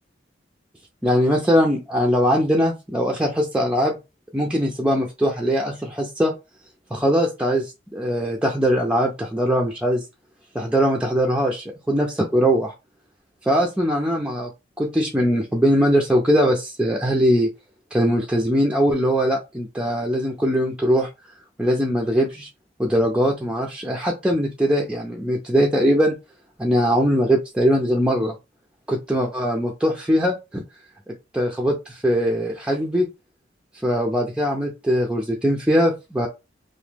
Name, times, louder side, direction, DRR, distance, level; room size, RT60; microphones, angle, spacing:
voice 1, 1.0-4.0 4.3-6.3 6.9-10.0 10.5-12.7 13.5-14.5 14.8-17.5 17.9-21.1 21.6-22.5 22.8-26.1 26.6-28.3 28.9-30.6 31.3-33.1 33.8-36.3, equal, 5° right, -1 dB, 0.4 m, -21 dB
2.9 x 2.1 x 3.3 m, 0.25 s
head